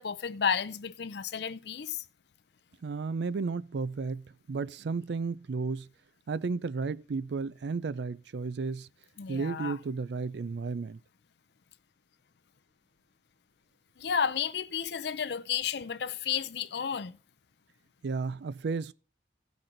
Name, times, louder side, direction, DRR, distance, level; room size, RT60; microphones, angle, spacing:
voice 1, 0.0-2.0 9.2-9.8 14.0-17.2, left 7 dB, 60° left, 0.5 m, -32 dB
voice 2, 2.8-5.9 6.3-8.9 9.3-11.0 18.0-18.9, right 4 dB, 60° right, 0.4 m, -33 dB
16.0 x 6.0 x 3.9 m
head